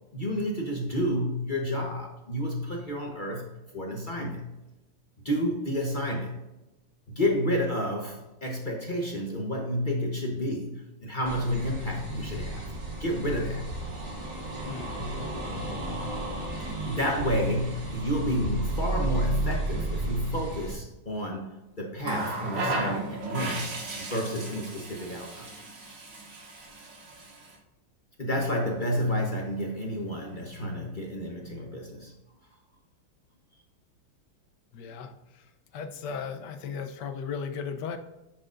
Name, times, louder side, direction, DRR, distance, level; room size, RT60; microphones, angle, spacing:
voice 1, 0.1-3.5 3.7-4.5 5.2-6.4 7.1-12.7 13.0-13.7 15.0-15.2 15.6-15.8 16.8-25.5 28.2-32.1, equal, 35° left, -1 dB, 0.8 m, -30 dB
sound 1, 11.3-20.7, right 2 dB, 45° right, 1.7 m, -33 dB
voice 2, 14.6-15.1 34.7-38.0, left 6 dB, 70° left, 8 dB, 1.2 m, -36 dB
Water tap faucet, 22.0-27.6 28.8-29.0, right 2 dB, 65° right, 2.2 m, -35 dB
9.9 x 6.6 x 2.5 m, 0.99 s
omnidirectional pair, 2.2 m